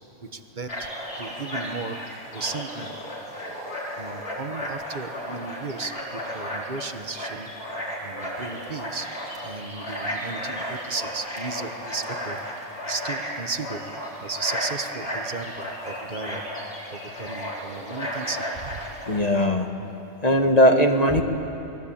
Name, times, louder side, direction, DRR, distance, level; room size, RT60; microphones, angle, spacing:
voice 1, 0.2-0.9 1.2-2.0 2.3-2.9 4.0-7.5 8.0-9.1 9.4-12.4 12.8-13.8 14.2-16.4 16.9-18.8 21.1-21.2, right 4 dB, 35° right, 8 dB, 1.3 m, -35 dB
sound 1, 0.7-19.2, equal, 45° left, 4.5 m, -34 dB
voice 2, 19.1-19.7 20.2-21.2, equal, 30° left, 4 dB, 1.6 m, -19 dB
29.0 x 21.5 x 8.7 m, 3.0 s
omnidirectional pair, 1.4 m